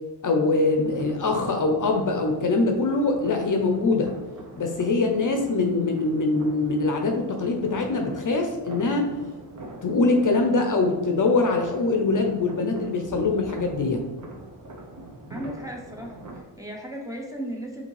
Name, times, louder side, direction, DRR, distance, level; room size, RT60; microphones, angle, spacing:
voice 1, 0.2-4.1 4.6-9.1 9.8-14.0, left 3 dB, 45° left, 3 dB, 0.6 m, -23 dB
sound 1, 0.7-16.4, right 2 dB, 40° right, 0.8 m, -43 dB
voice 2, 15.3-17.8, right 1 dB, 10° right, -1 dB, 0.8 m, -36 dB
5.0 x 2.8 x 3.2 m, 1.2 s
cardioid pair, 75°, 44 cm